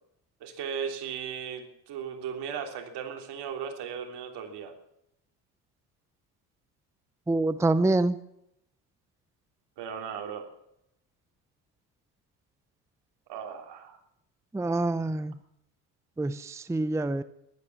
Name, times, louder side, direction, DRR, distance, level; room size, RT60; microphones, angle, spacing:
voice 1, 0.4-4.7 9.8-10.5 13.3-14.0, right 7 dB, 65° right, 5 dB, 3.3 m, -36 dB
voice 2, 7.3-8.2 14.5-15.3 16.2-17.2, right 2 dB, 5° right, 15 dB, 0.6 m, -26 dB
14.5 x 12.0 x 7.3 m, 0.78 s
supercardioid pair, 90°, 43 cm